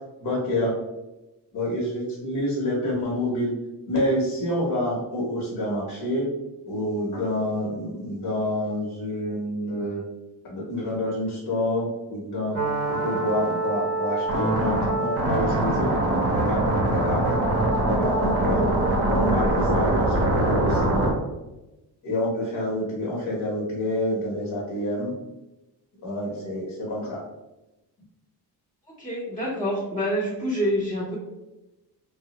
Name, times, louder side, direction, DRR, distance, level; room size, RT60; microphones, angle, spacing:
voice 1, 0.2-0.7 1.5-3.5 3.9-6.3 6.7-10.0 10.5-12.6 12.9-15.9 16.3-17.2 17.9-18.6 19.1-21.0 22.0-25.1 26.0-27.2, left 1 dB, 60° left, -4 dB, 0.8 m, -28 dB
sound 1, 12.5-21.1, right 1 dB, 35° right, 0.5 m, -23 dB
voice 2, 29.0-31.2, equal, 10° left, -10 dB, 0.5 m, -27 dB
3.1 x 2.0 x 2.8 m, 1.0 s
wide cardioid pair, 165°, 41 cm